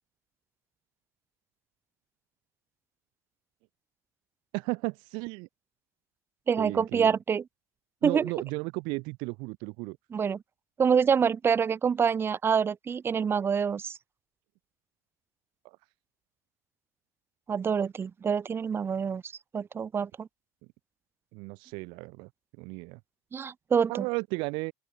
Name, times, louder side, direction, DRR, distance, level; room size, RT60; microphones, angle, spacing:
voice 1, 4.5-5.5 6.6-7.1 8.0-10.0 15.6-15.8 21.3-22.3 22.6-23.0 23.9-24.7, right 28 dB, 60° right, 2.6 m, -34 dB
voice 2, 6.5-7.4 8.0-8.3 10.1-10.4 10.8-14.0 17.5-20.3 23.3-24.0, right 6 dB, 25° right, 3.4 m, -26 dB
open air
supercardioid pair, 105°, 9 cm